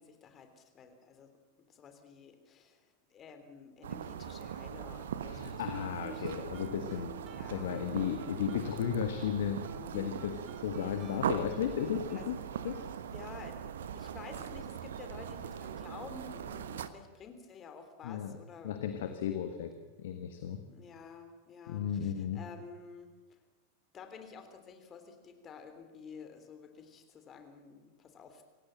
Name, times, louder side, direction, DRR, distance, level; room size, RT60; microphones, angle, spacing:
voice 1, 0.0-1.3 1.7-5.9 6.1-6.4 7.3-7.7 10.8-11.3 12.1-12.3 13.0-18.7 19.0-19.1 20.7-23.4 23.9-28.4, left 5 dB, 25° left, 7 dB, 3.3 m, -51 dB
sound 1, 3.8-16.9, right 8 dB, 60° right, 1.2 m, -40 dB
voice 2, 5.3-7.1 7.4-9.6 9.9-10.4 10.6-12.4 12.6-12.8 18.0-18.4 18.6-19.7 20.0-20.6 21.7-22.4, left 9 dB, 55° left, 7 dB, 1.6 m, -34 dB
Guitar, 5.7-13.5, right 1 dB, 30° right, 2.9 m, -51 dB
26.5 x 17.0 x 7.7 m, 1.2 s
figure-of-eight pair, 90°, 0 cm